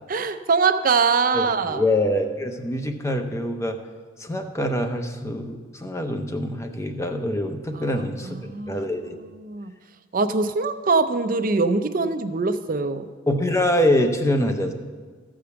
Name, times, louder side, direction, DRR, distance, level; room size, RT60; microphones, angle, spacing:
voice 1, 0.1-1.8 7.8-8.8 9.4-9.7 10.1-13.0, right 4 dB, 45° right, 10 dB, 0.5 m, -23 dB
voice 2, 1.3-3.8 4.2-9.2 13.3-14.7, left 1 dB, 15° left, 5 dB, 0.7 m, -24 dB
14.0 x 5.0 x 6.9 m, 1.5 s
head